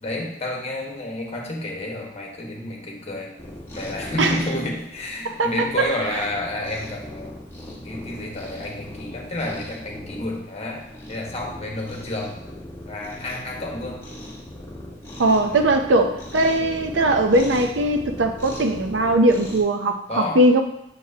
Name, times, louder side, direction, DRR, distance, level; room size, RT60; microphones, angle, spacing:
voice 1, 0.0-3.3 3.7-7.4 7.8-12.4 12.9-14.0 15.4-15.6 20.1-20.4, left 1 dB, 35° left, -1 dB, 1.3 m, -30 dB
Cat, 3.4-19.6, left 1 dB, 15° left, 1.3 m, -39 dB
voice 2, 5.4-5.9 15.2-20.6, right 1 dB, 75° right, 6 dB, 0.6 m, -20 dB
7.4 x 6.2 x 2.8 m, 0.79 s
head